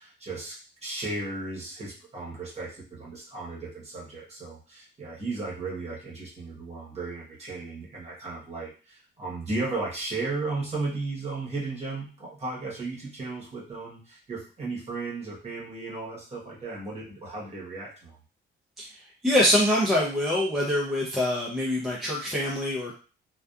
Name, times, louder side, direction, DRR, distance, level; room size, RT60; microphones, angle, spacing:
voice 1, 0.0-18.2, right 3 dB, 35° right, -4 dB, 1.0 m, -35 dB
voice 2, 19.2-22.9, left 1 dB, ahead, -5 dB, 0.5 m, -24 dB
2.6 x 2.3 x 2.3 m, 0.35 s
wide cardioid pair, 160°, 20 cm